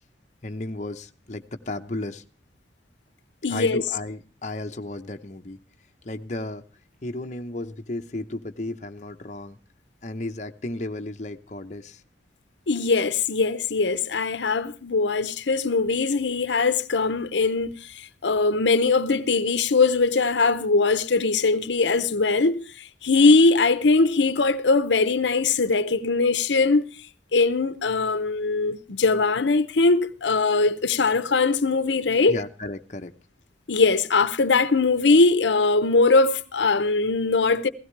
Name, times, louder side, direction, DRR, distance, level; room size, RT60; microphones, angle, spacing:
voice 1, 0.4-2.2 3.5-5.6 6.0-6.6 7.0-9.6 10.0-12.0 32.3-33.1, left 2 dB, 40° left, 0.9 m, -34 dB
voice 2, 3.4-3.8 12.7-26.8 27.3-32.4 33.7-37.7, left 3 dB, 90° left, 0.8 m, -21 dB
16.5 x 16.0 x 3.2 m
head